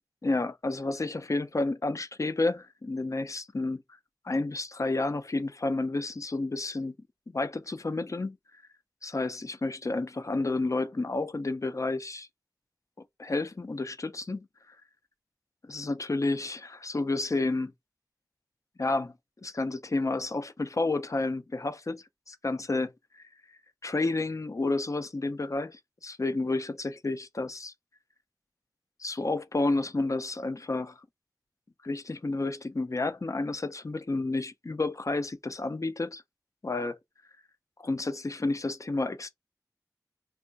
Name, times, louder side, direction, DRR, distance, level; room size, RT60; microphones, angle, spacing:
voice 1, 0.2-3.8 4.2-6.9 7.3-8.4 9.0-12.3 13.2-14.8 15.6-17.7 18.8-19.1 19.4-23.2 23.8-27.7 29.0-31.0 31.8-36.2 36.6-37.0 37.8-39.3, left 2 dB, 45° left, 0.4 m, -30 dB
2.4 x 2.2 x 3.7 m
wide cardioid pair, 55°, 7 cm